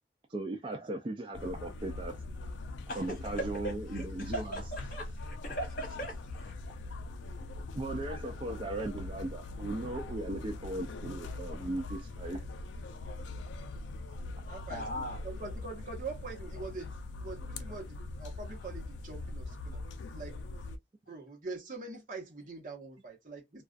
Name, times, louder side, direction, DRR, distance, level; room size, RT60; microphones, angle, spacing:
voice 1, 0.3-2.2 3.0-4.6 7.7-12.4, right 2 dB, 30° right, 0.3 m, -37 dB
sound 1, 1.3-20.8, left 2 dB, 85° left, 0.4 m, -42 dB
voice 2, 3.6-6.5 14.7-15.2, right 1 dB, 50° left, 1.1 m, -40 dB
voice 3, 14.5-16.9 17.2-19.8 20.1-20.4 21.1-23.6, right 3 dB, 45° right, 0.9 m, -44 dB
2.3 x 2.3 x 2.4 m
head